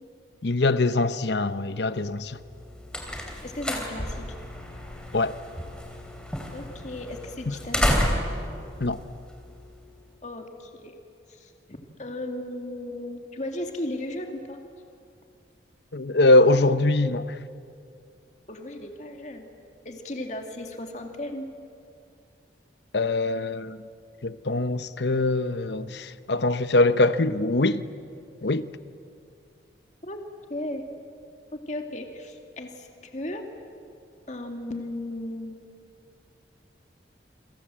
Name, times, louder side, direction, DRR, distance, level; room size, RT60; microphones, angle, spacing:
voice 1, 0.4-2.4 5.1-5.4 7.5-7.6 8.8-9.0 15.9-17.4 22.9-23.8 24.2-27.8 28.4-28.7, left 2 dB, 65° left, 0.9 m, -23 dB
sound 1, 2.4-9.9, equal, 5° left, 3.3 m, -31 dB
voice 2, 3.4-4.3 6.5-7.9 10.2-11.0 11.3-14.6 18.5-19.5 19.8-21.5 30.0-30.2 30.5-30.8 31.5-33.5 34.3-35.6, left 1 dB, 40° left, 2.2 m, -35 dB
28.5 x 25.5 x 7.6 m
head